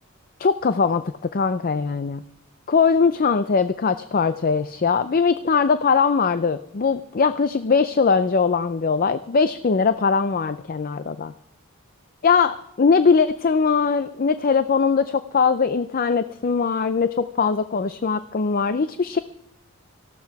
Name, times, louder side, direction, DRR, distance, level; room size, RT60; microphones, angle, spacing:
voice 1, 0.4-2.2 2.7-11.3 12.2-19.2, left 5 dB, 40° left, 12 dB, 0.5 m, -21 dB
18.5 x 14.0 x 4.7 m, 0.82 s
head